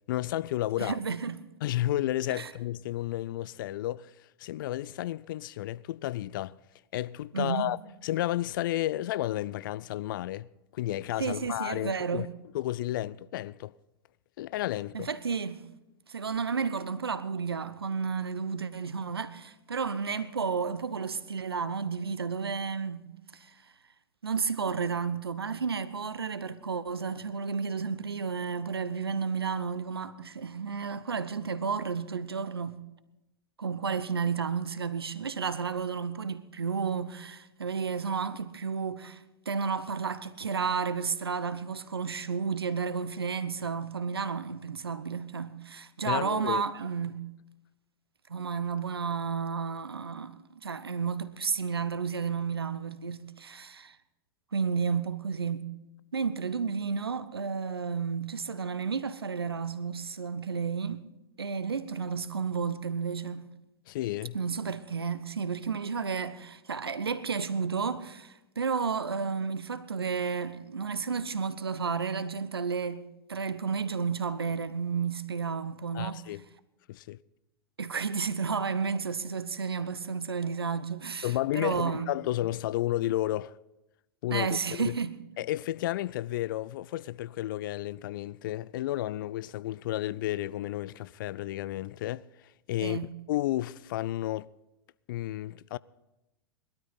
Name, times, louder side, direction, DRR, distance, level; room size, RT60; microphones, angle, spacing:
voice 1, 0.1-1.0 1.6-4.1 4.4-6.6 6.9-10.5 10.7-12.3 12.5-13.8 14.4-15.1 46.0-46.6 63.9-64.4 75.9-76.4 76.9-77.2 81.2-83.5 84.2-85.0 85.4-92.3 92.7-93.0 93.3-94.5 95.1-95.8, left 14 dB, 60° left, 0.4 m, -32 dB
voice 2, 0.8-1.4 2.3-2.5 7.3-7.7 11.2-12.3 14.9-15.6 16.1-23.1 23.3-23.5 24.2-32.8 33.6-47.2 48.3-54.0 54.5-55.6 56.1-61.0 61.4-63.5 64.3-76.2 77.8-82.1 84.3-85.2 92.8-93.1, right 5 dB, 85° right, 0.8 m, -32 dB
20.5 x 12.5 x 4.0 m
hypercardioid pair, 100°, 12 cm